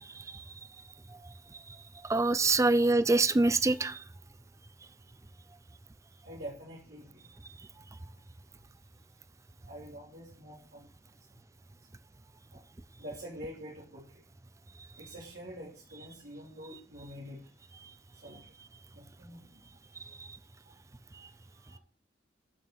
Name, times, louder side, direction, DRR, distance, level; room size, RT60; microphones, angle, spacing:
voice 1, 2.1-4.0, right 3 dB, 15° right, 0.4 m, -24 dB
voice 2, 6.2-7.3 9.7-10.9 12.5-12.6 13.0-14.2 15.0-17.4 18.2-18.5 18.9-19.6 20.6-20.7 21.2-21.3 21.5-21.8, equal, 55° right, 2.7 m, -46 dB
11.5 x 7.1 x 3.9 m
head